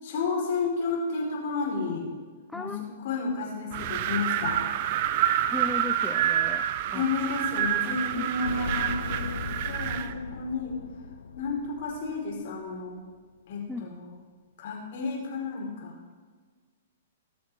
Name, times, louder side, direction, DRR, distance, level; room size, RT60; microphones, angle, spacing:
voice 1, 0.0-2.1 2.5-4.6 6.9-9.3 9.7-10.8 11.3-13.0 13.5-14.1 14.6-16.0, left 4 dB, 60° left, -1 dB, 4.0 m, -31 dB
voice 2, 2.5-2.8 5.5-6.7 6.9-7.0 8.1-8.3 13.7-13.9, left 3 dB, 5° left, 7 dB, 0.4 m, -36 dB
Wind, 3.7-10.1, right 11 dB, 50° right, 0.6 m, -28 dB
sound 1, 8.4-12.7 13.0-13.1, left 5 dB, 85° left, 0.5 m, -38 dB
18.5 x 6.4 x 4.7 m, 1.5 s
hypercardioid pair, 130°, 0 cm